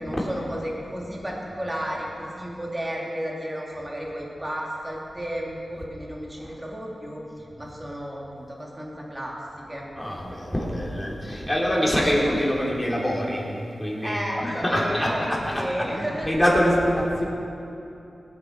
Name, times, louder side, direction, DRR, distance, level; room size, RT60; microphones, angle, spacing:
voice 1, 0.0-7.2 7.6-9.3 9.7-9.9 14.0-16.3, equal, 20° right, -3 dB, 2.8 m, -33 dB
voice 2, 10.0-17.2, equal, 10° left, -4 dB, 3.5 m, -25 dB
18.5 x 8.2 x 4.6 m, 2.8 s
cardioid pair, 50°, 0 cm